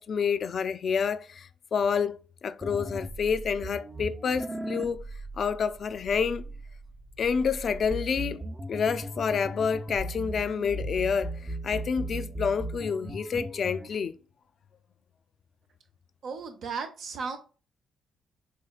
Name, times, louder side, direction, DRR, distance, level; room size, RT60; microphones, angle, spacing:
voice 1, 0.0-2.2 2.4-5.1 5.4-6.5 7.2-11.4 11.6-14.1, left 6 dB, 55° left, 0.3 m, -28 dB
sound 1, 2.6-13.9, right 1 dB, 20° right, 0.6 m, -38 dB
voice 2, 16.2-17.4, right 5 dB, 65° right, 0.8 m, -35 dB
4.1 x 3.2 x 2.3 m
cardioid pair, 90°, 0 cm